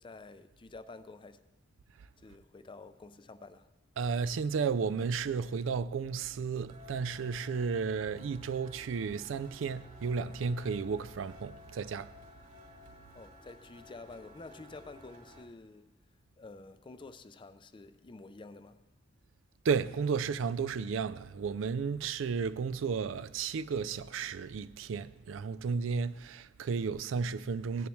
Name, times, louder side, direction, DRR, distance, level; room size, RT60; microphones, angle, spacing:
voice 1, 0.0-1.4 2.2-3.7 13.1-15.9 16.4-18.8, left 3 dB, 25° left, 0.4 m, -50 dB
voice 2, 4.0-12.1 19.6-27.9, right 5 dB, 80° right, 0.4 m, -33 dB
sound 1, 6.7-15.4, left 2 dB, 45° right, 2.9 m, -54 dB
17.0 x 10.0 x 3.1 m
head